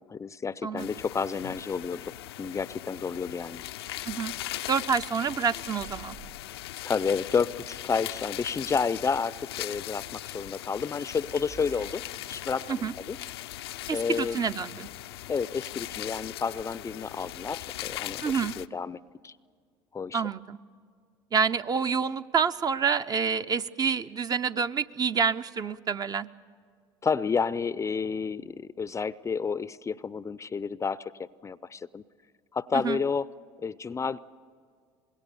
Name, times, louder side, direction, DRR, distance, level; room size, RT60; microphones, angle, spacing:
voice 1, 0.1-2.0 2.4-3.6 6.8-12.0 12.3-13.2 13.9-14.4 15.3-19.0 19.2-19.3 19.9-20.2 27.0-31.0 31.4-32.0 32.5-33.3 33.6-34.2, left 5 dB, 25° left, 18 dB, 0.5 m, -30 dB
sound 1, 0.8-18.7, left 14 dB, 80° left, 0.5 m, -39 dB
sound 2, 3.9-4.2 5.6-7.3 9.1-10.3 11.3-12.5 13.9-14.6 15.5-16.4, right 9 dB, 60° right, 7.4 m, -53 dB
voice 2, 4.7-6.2 12.7-12.9 13.9-14.9 18.2-18.5 20.1-20.6 21.3-26.3 32.7-33.0, right 6 dB, 30° right, 11 dB, 0.6 m, -28 dB
25.0 x 21.0 x 7.0 m, 2.1 s
hypercardioid pair, 75°, 13 cm